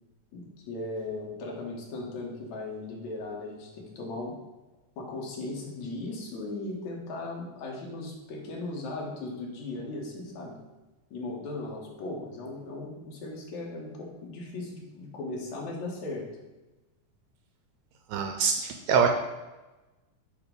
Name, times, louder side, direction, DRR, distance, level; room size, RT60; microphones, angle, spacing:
voice 1, 0.3-4.3 5.0-10.6 11.1-16.3, left 2 dB, 65° left, -2 dB, 2.7 m, -37 dB
voice 2, 18.1-19.1, right 6 dB, 80° right, 4 dB, 1.8 m, -24 dB
8.1 x 3.6 x 5.2 m, 1.1 s
omnidirectional pair, 3.6 m